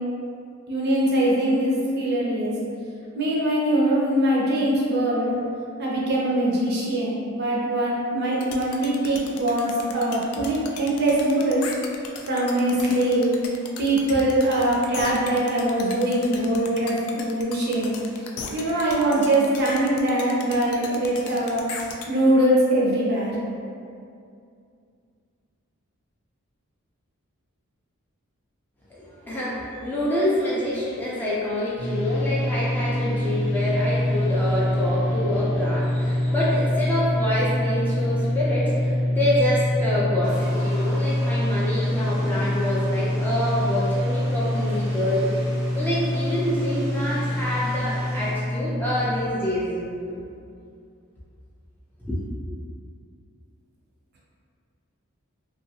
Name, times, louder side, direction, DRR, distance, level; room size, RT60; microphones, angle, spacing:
voice 1, 0.7-2.5 3.2-5.3 5.8-11.7 12.3-13.3 13.8-17.9 18.5-21.6 22.1-23.3, right 1 dB, 50° right, -4 dB, 0.5 m, -22 dB
sound 1, 8.4-22.1, left 5 dB, 85° left, 0.3 m, -37 dB
voice 2, 28.9-45.3 45.7-50.2 52.1-52.2, left 1 dB, 10° left, -8 dB, 0.3 m, -26 dB
sound 2, 31.8-49.2, left 1 dB, 55° left, 0.6 m, -25 dB
sound 3, 40.2-48.3, equal, 90° right, 0.6 m, -40 dB
2.6 x 2.4 x 2.7 m, 2.4 s
head